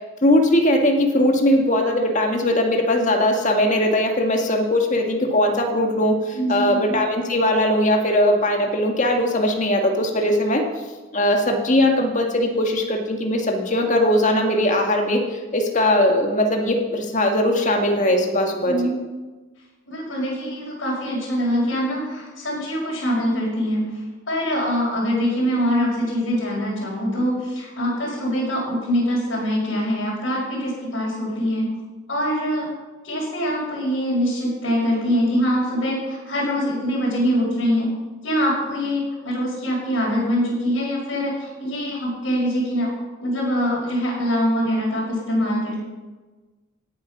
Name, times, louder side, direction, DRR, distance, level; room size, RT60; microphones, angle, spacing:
voice 1, 0.2-10.6 11.1-18.8, left 1 dB, 40° left, 2 dB, 2.0 m, -20 dB
voice 2, 6.3-6.8 18.6-19.0 19.9-31.7 32.1-32.7 33.0-37.9 38.2-42.9 43.2-45.8, equal, 65° left, -6 dB, 5.7 m, -23 dB
17.5 x 8.8 x 5.9 m, 1.3 s
head